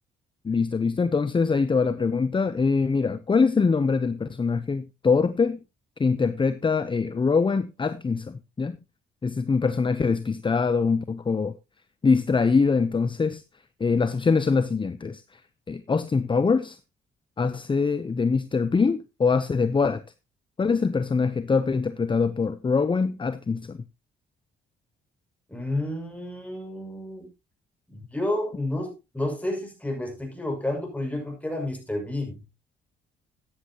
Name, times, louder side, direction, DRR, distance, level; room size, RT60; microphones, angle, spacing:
voice 1, 0.4-5.6 6.0-8.8 9.2-11.5 12.0-13.4 13.8-15.4 15.7-16.8 17.4-20.0 20.6-23.8, left 4 dB, 25° left, 0.8 m, -23 dB
voice 2, 25.5-27.3 27.9-32.4, left 1 dB, 5° left, 6.6 m, -30 dB
14.5 x 9.9 x 3.0 m
cardioid pair, 90°, 20 cm